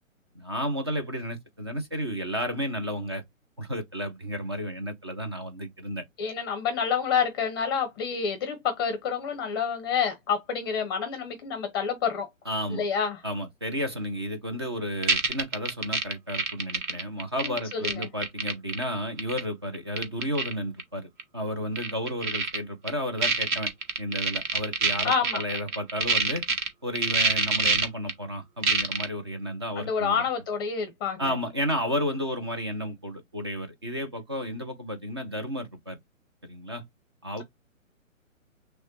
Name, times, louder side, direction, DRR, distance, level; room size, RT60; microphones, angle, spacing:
voice 1, 0.3-3.2 3.6-6.0 12.5-12.8 13.2-23.7 24.0-26.4 26.8-30.2 31.2-36.0 36.4-36.8 37.2-37.4, equal, 20° right, 0.4 m, -32 dB
voice 2, 6.2-12.3 12.7-13.2 17.4-18.1 25.0-25.4 29.8-31.4 37.4-37.5, left 6 dB, 15° left, 0.7 m, -28 dB
sound 1, 15.0-18.8 19.2-19.4 19.7-20.5 20.8-20.9 21.2-21.3 21.8-22.6 22.9-23.0 23.2-26.7 27.0-28.1 28.6-29.1, right 4 dB, 35° right, 1.0 m, -25 dB
6.2 x 2.1 x 2.9 m
figure-of-eight pair, 140°, 41 cm